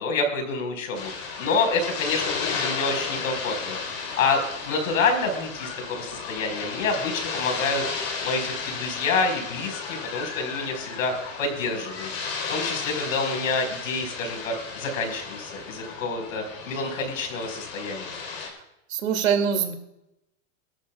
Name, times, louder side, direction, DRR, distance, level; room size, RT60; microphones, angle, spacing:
voice 1, 0.0-7.8 8.2-11.1 11.4-12.1 12.5-18.2, left 3 dB, 75° left, 5 dB, 4.7 m, -28 dB
sound 1, 0.9-18.5, left 5 dB, 45° left, 3.8 m, -34 dB
voice 2, 18.9-19.7, right 7 dB, 75° right, 6 dB, 2.5 m, -23 dB
22.5 x 13.0 x 2.3 m, 0.88 s
supercardioid pair, 175°, 40 cm